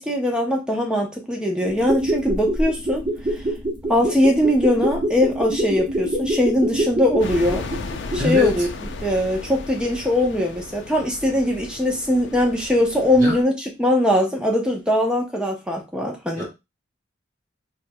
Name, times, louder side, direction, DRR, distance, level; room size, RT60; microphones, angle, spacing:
voice 1, 0.0-3.0 3.9-7.6 8.1-8.7 9.0-16.5, left 1 dB, 5° right, 0.6 m, -21 dB
sound 1, 1.7-8.6 8.9-9.0, right 1 dB, 25° right, 1.0 m, -25 dB
sound 2, 7.2-13.4, left 3 dB, 65° left, 0.4 m, -35 dB
voice 2, 8.2-8.5 13.2-13.4 16.4-16.5, left 3 dB, 80° right, 1.0 m, -22 dB
4.4 x 2.3 x 2.2 m
head